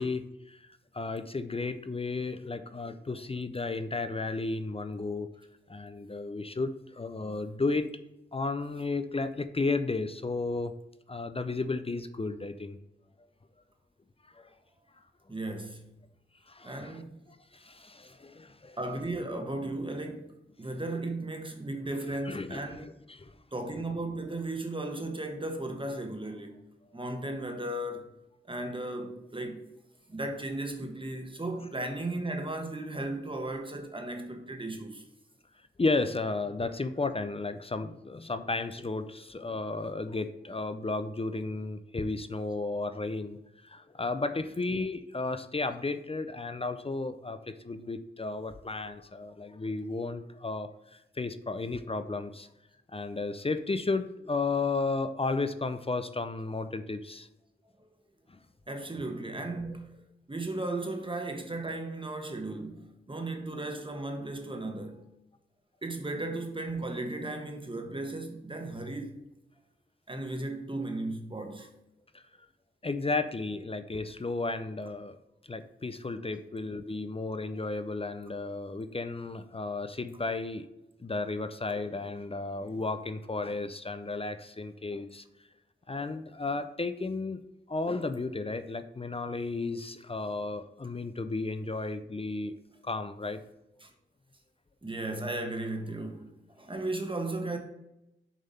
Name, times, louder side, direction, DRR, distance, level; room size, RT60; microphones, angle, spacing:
voice 1, 0.0-5.3 5.7-7.8 8.3-10.7 11.1-12.8 14.3-14.5 16.5-17.0 17.5-18.8 22.1-23.3 35.8-52.5 52.9-57.3 58.3-58.4 72.1-72.2 72.8-75.2 75.5-80.7 81.0-85.2 85.9-87.4 87.7-92.5 92.8-93.4, left 3 dB, 30° left, 0.5 m, -33 dB
voice 2, 15.3-15.9 16.6-17.2 18.8-22.9 23.5-26.6 26.9-28.1 28.5-29.6 30.1-35.0 57.8-57.9 58.7-59.9 60.3-65.1 65.8-69.2 70.1-71.7 80.1-80.2 93.8-93.9 94.8-97.6, right 2 dB, 25° right, 1.2 m, -36 dB
7.3 x 3.4 x 5.5 m
cardioid pair, 60°, 21 cm